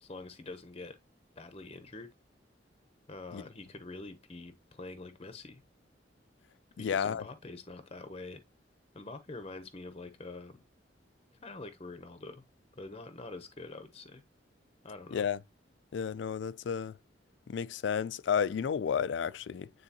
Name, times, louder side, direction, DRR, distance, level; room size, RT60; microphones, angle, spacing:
voice 1, 0.0-1.0 1.4-2.1 3.1-5.6 6.8-8.4 8.9-10.6 11.4-12.4 12.7-14.2 14.8-15.2, left 3 dB, 30° left, 0.7 m, -45 dB
voice 2, 6.8-7.2 15.1-15.4 15.9-17.0 17.5-19.7, left 7 dB, 80° left, 0.4 m, -32 dB
9.2 x 3.8 x 2.8 m
head